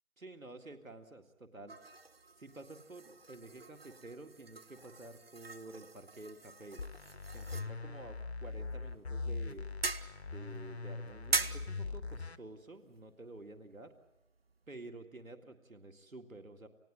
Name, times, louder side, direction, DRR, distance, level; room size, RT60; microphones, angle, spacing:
voice 1, 0.2-1.8 2.4-6.8 7.3-9.7 10.3-13.9 14.7-16.7, right 2 dB, 85° right, 6 dB, 2.2 m, -50 dB
sound 1, 1.7-14.7, right 3 dB, 50° right, 0.8 m, -43 dB
sound 2, 6.8-12.4, left 3 dB, 50° left, 0.9 m, -41 dB
30.0 x 16.0 x 8.8 m, 0.99 s
figure-of-eight pair, 160°, 40 cm